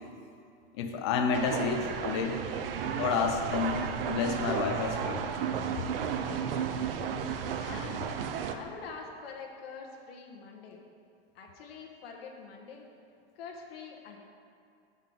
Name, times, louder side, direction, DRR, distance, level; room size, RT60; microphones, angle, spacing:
voice 1, 0.7-2.4 3.0-5.2, left 5 dB, 25° left, 4 dB, 0.4 m, -30 dB
sound 1, 1.3-8.6, right 7 dB, 65° right, 0.6 m, -33 dB
voice 2, 7.6-8.2 8.5-10.8 11.3-12.8 13.3-14.2, left 5 dB, 70° left, 0 dB, 1.1 m, -45 dB
7.4 x 5.4 x 5.3 m, 2.4 s
supercardioid pair, 175°, 31 cm